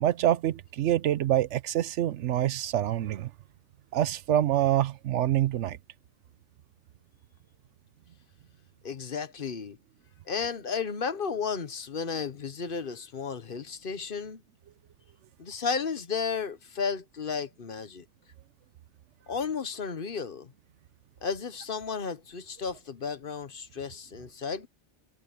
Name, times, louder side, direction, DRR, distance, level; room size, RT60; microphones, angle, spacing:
voice 1, 0.0-3.3 3.9-5.8, right 12 dB, 85° right, 1.0 m, -26 dB
voice 2, 8.8-9.8 10.3-14.4 15.4-18.0 19.3-20.5 21.2-24.7, left 5 dB, 50° left, 1.1 m, -33 dB
omnidirectional pair, 1.2 m